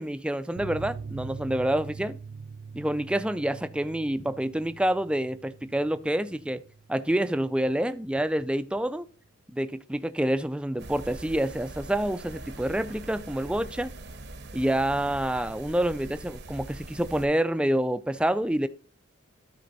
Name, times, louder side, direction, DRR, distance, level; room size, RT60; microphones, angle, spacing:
voice 1, 0.0-2.2 2.7-6.6 6.9-9.1 9.5-13.9 14.5-18.7, right 1 dB, 5° right, 0.3 m, -27 dB
sound 1, 0.6-7.7 7.9-8.0 8.4-8.5, right 5 dB, 85° right, 0.5 m, -43 dB
sound 2, 10.8-17.3, right 2 dB, 55° right, 0.8 m, -42 dB
12.5 x 4.3 x 3.9 m
head